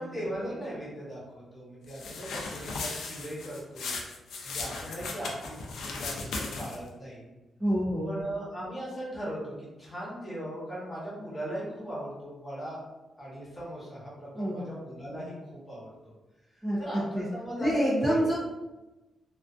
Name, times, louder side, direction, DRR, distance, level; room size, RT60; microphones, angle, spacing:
voice 1, 0.0-4.0 4.4-7.3 8.0-12.8 13.2-16.1 16.8-18.2, right 1 dB, 20° left, -8 dB, 1.0 m, -38 dB
sound 1, 1.9-6.9, left 3 dB, 80° left, 0.4 m, -37 dB
voice 2, 7.6-8.2 14.3-14.6 15.1-15.2 16.6-17.3 17.6-18.4, equal, 15° right, -7 dB, 0.5 m, -28 dB
2.4 x 2.4 x 2.4 m, 1.1 s
wide cardioid pair, 155°, 0 cm